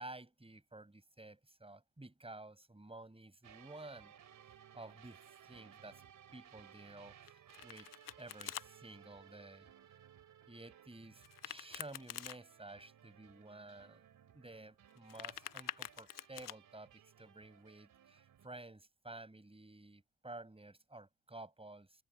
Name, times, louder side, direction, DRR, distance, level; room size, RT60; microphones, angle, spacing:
voice 1, 0.0-4.1 4.7-6.0 6.3-7.9 8.2-9.7 10.5-14.1 14.3-22.0, right 2 dB, 15° right, 5.2 m, -53 dB
sound 1, 3.4-18.5, right 9 dB, 65° right, 4.4 m, -61 dB
Domestic sounds home sounds, 7.3-8.7 11.2-12.4 14.9-16.6, left 13 dB, 65° left, 1.0 m, -46 dB
hypercardioid pair, 40°, 35 cm